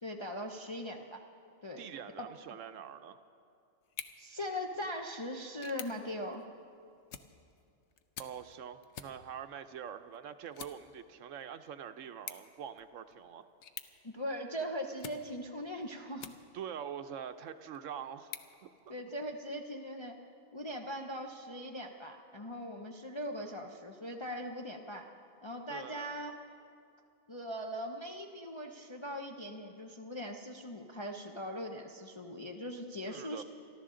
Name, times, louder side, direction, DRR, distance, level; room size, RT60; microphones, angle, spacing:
voice 1, 0.0-1.2 1.6-1.9 2.2-2.3 4.2-6.5 14.0-16.3 18.9-20.2 20.5-25.1 25.4-26.3 27.3-33.4, equal, 35° left, 1 dB, 0.5 m, -40 dB
voice 2, 1.8-3.2 8.2-13.5 16.5-18.3 18.6-18.9 25.7-26.2 33.1-33.4, right 8 dB, 70° right, 10 dB, 0.9 m, -44 dB
sound 1, 3.8-16.8 17.3-19.4, left 8 dB, 60° left, 0.9 m, -52 dB
27.5 x 11.5 x 3.8 m, 2.5 s
omnidirectional pair, 1.4 m